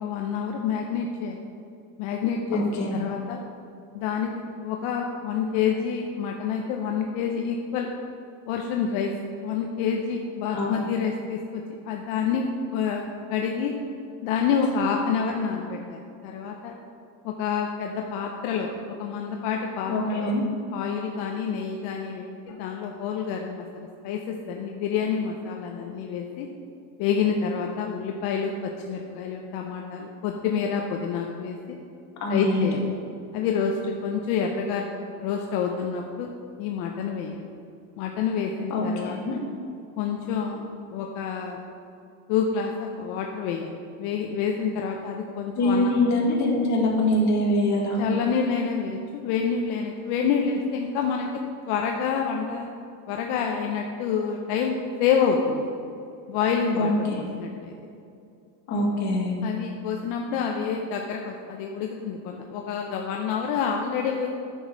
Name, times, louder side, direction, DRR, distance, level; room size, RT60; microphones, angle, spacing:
voice 1, 0.0-1.4 2.0-3.4 3.9-4.3 4.6-7.9 8.5-9.1 9.4-13.0 13.3-13.8 14.2-16.7 17.2-18.7 19.0-20.3 20.7-26.5 27.0-31.8 32.3-32.8 33.3-34.9 35.2-36.3 36.6-37.4 38.0-39.4 40.0-40.6 40.9-41.6 42.3-45.9 48.0-51.4 51.7-52.7 53.1-55.7 56.3-57.7 59.4-64.3, left 6 dB, 75° left, 2 dB, 0.8 m, -28 dB
voice 2, 2.5-3.0 10.5-10.8 19.9-20.4 32.2-32.8 38.7-39.4 45.6-48.0 56.8-57.3 58.7-59.3, left 1 dB, 45° left, -2 dB, 2.0 m, -24 dB
9.1 x 6.4 x 4.7 m, 2.6 s
cardioid pair, 140°, 39 cm